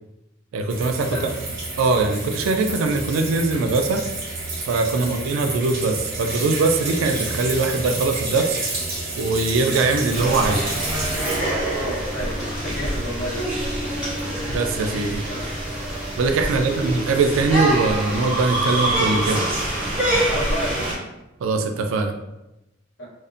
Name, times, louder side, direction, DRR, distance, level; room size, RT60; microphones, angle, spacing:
voice 1, 0.5-1.3 1.8-4.0 4.7-8.6 9.2-10.7 14.5-15.3 16.2-19.4 21.4-22.1, right 3 dB, 80° right, 5 dB, 0.3 m, -21 dB
sound 1, 0.7-17.0, right 2 dB, 45° right, 0.8 m, -31 dB
sound 2, 10.1-20.9, right 1 dB, 5° right, 0.7 m, -25 dB
voice 2, 11.7-13.5 13.8-14.0 15.3-15.5 16.4-16.9 20.3-20.9 23.0-23.1, equal, 60° left, -8 dB, 1.1 m, -31 dB
2.5 x 2.0 x 2.5 m, 0.95 s
head